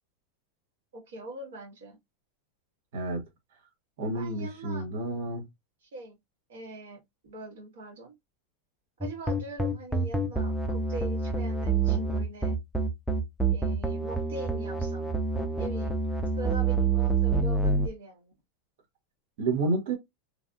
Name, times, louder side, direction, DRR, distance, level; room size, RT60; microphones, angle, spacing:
voice 1, 0.9-2.0 4.1-4.9 5.9-6.2 6.5-8.1 9.0-12.6 13.5-15.1 15.6-16.0 16.4-18.3, right 2 dB, 90° right, 1.4 m, -42 dB
voice 2, 4.0-5.5 19.4-19.9, right 2 dB, 70° right, 1.2 m, -29 dB
sound 1, 9.0-17.9, right 4 dB, ahead, 0.5 m, -27 dB
3.2 x 2.6 x 2.3 m
supercardioid pair, 140°, 0 cm